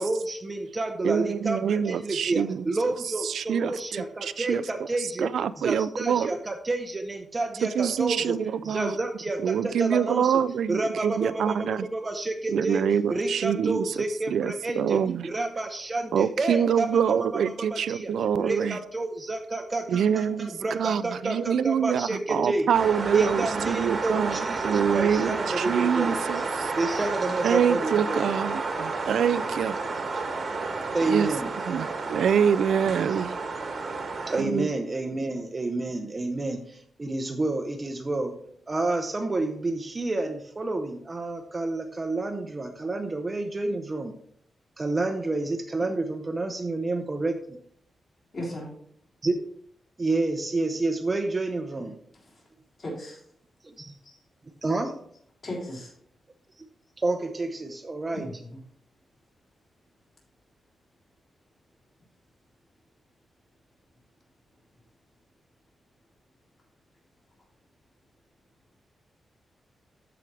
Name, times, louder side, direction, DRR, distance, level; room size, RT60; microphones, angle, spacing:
voice 1, 0.0-10.4 10.7-18.1 18.4-22.7 23.1-26.2 26.8-28.3 30.9-31.5 33.1-33.2 34.3-44.2 44.8-47.6 49.2-49.5 50.0-52.0 53.6-53.9 54.6-55.0 56.6-56.7 57.0-58.3, right 2 dB, 20° right, 6 dB, 0.6 m, -30 dB
voice 2, 1.0-2.6 3.3-4.6 5.2-6.3 7.6-9.0 9.4-11.9 12.5-13.9 14.3-15.3 16.1-18.8 19.9-24.4 24.6-26.7 27.4-29.8 31.1-31.3 31.7-33.4 34.4-34.7, right 8 dB, 80° right, 15 dB, 0.3 m, -25 dB
sound 1, 22.7-34.4, right 3 dB, 40° right, 1.2 m, -31 dB
voice 3, 48.3-48.7 52.2-52.4 52.8-53.2 54.0-54.2 55.4-55.9 58.1-58.6, left 1 dB, 40° left, -4 dB, 3.8 m, -36 dB
13.5 x 4.9 x 3.2 m, 0.64 s
wide cardioid pair, 160°, 0 cm